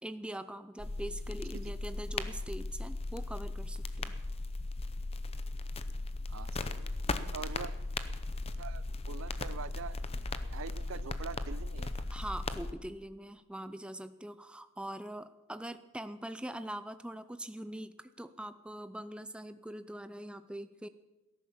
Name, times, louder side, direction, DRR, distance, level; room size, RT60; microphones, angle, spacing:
voice 1, 0.0-4.1 12.1-20.9, right 1 dB, 5° right, 11 dB, 0.4 m, -43 dB
sound 1, 0.8-12.7, left 2 dB, 25° left, 0.7 m, -37 dB
voice 2, 6.3-6.9 7.3-7.7 8.6-10.0 10.3-12.1, right 5 dB, 60° right, 18 dB, 0.5 m, -44 dB
17.5 x 11.0 x 7.2 m, 1.1 s
head